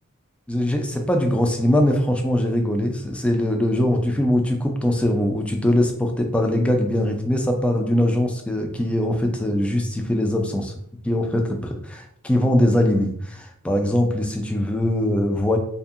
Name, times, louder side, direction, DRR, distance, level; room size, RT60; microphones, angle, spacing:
voice 1, 0.5-10.7 11.0-15.6, left 1 dB, 5° left, 3 dB, 0.3 m, -21 dB
2.7 x 2.6 x 2.4 m, 0.69 s
head